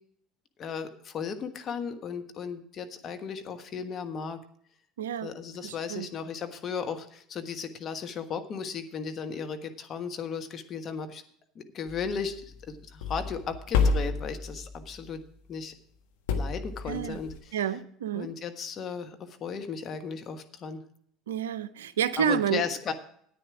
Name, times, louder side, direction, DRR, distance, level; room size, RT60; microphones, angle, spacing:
voice 1, 0.6-4.4 5.2-11.2 11.5-15.2 15.5-15.7 16.4-17.6 18.1-20.8 22.2-22.9, left 6 dB, 45° left, 1.3 m, -35 dB
voice 2, 5.0-5.3 5.6-6.1 16.9-17.2 17.5-18.3 21.3-22.6, right 8 dB, 80° right, 0.5 m, -29 dB
sound 1, 11.9-15.1 16.3-17.4, left 4 dB, 75° left, 1.2 m, -30 dB
10.0 x 9.2 x 4.8 m
hypercardioid pair, 70°, 0 cm